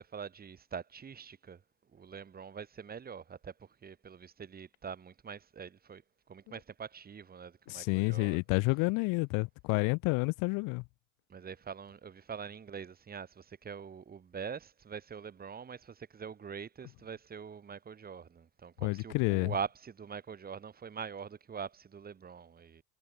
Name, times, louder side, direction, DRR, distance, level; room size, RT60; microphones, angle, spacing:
voice 1, 0.0-1.6 1.9-6.0 6.3-8.4 11.3-22.8, right 6 dB, 25° right, 1.4 m, -44 dB
voice 2, 7.7-10.8 18.8-19.5, left 28 dB, 65° left, 0.6 m, -29 dB
supercardioid pair, 90°, 36 cm